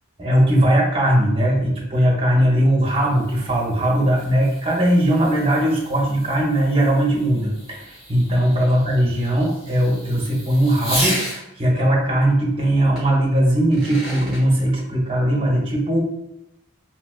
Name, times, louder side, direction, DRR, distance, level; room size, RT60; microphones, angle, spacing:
voice 1, 0.2-16.0, right 1 dB, 25° right, -2 dB, 0.7 m, -19 dB
Fireworks, 2.7-11.4 13.0-13.1 13.6-14.4, equal, 5° right, 1.2 m, -33 dB
3.2 x 2.7 x 2.3 m, 0.89 s
head